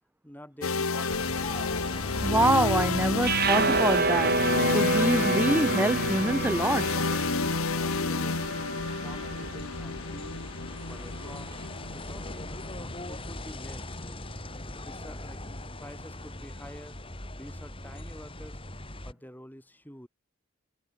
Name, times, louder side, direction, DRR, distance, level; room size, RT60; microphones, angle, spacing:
voice 1, 0.2-1.5 7.8-8.8 9.0-10.4 10.9-14.3 14.8-15.4 15.8-17.0 17.3-18.6 19.0-20.1, equal, 10° left, 6.9 m, -48 dB
sound 1, 0.6-14.5, left 4 dB, 85° left, 1.6 m, -30 dB
sound 2, 1.1-19.1, left 1 dB, 25° left, 5.3 m, -41 dB
voice 2, 2.2-4.4 4.6-7.2, right 1 dB, 10° right, 0.7 m, -26 dB
sound 3, 3.2-9.5, right 4 dB, 45° right, 3.3 m, -29 dB
head